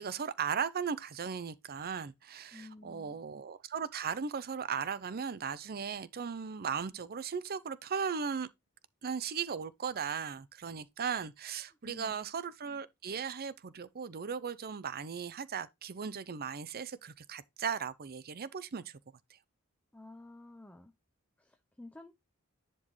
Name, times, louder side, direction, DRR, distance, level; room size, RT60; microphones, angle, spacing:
voice 1, 0.0-8.5 9.0-19.0, right 6 dB, 45° right, 0.6 m, -37 dB
voice 2, 2.5-3.2 11.8-12.2 19.9-20.9 21.4-22.1, left 2 dB, 5° left, 0.6 m, -51 dB
10.5 x 4.4 x 3.1 m
head